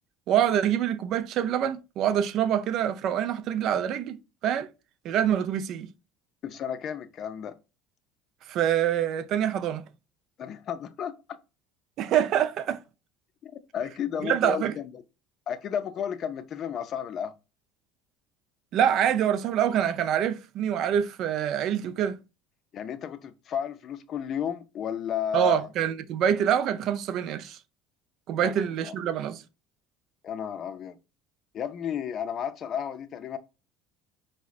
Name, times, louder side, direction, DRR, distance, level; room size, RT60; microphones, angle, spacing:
voice 1, 0.3-4.7 5.0-5.9 8.5-9.8 12.0-12.8 14.2-14.7 18.7-22.2 25.3-27.6 28.3-29.4, right 9 dB, 55° right, 0.3 m, -25 dB
voice 2, 6.4-7.6 10.4-11.2 13.4-15.0 15.5-17.3 22.7-25.7 28.4-28.9 30.2-31.0 31.5-33.4, left 8 dB, 50° left, 0.4 m, -33 dB
4.6 x 2.1 x 2.4 m
hypercardioid pair, 75°, 0 cm